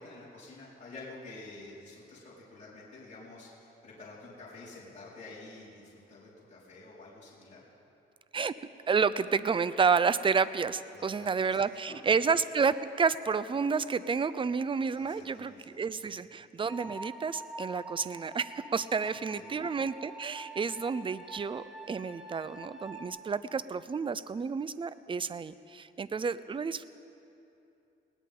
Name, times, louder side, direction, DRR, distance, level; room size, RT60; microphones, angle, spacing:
voice 1, 0.0-7.6 10.9-11.6 11.9-12.2 14.9-15.8 16.1-16.2 19.3-19.5, left 2 dB, 40° left, -8 dB, 4.7 m, -49 dB
voice 2, 8.9-26.8, right 5 dB, 25° right, 15 dB, 0.5 m, -30 dB
sound 1, 16.7-23.1, right 1 dB, 5° right, 1.6 m, -46 dB
19.5 x 18.5 x 3.8 m, 2.8 s
cardioid pair, 90°, 20 cm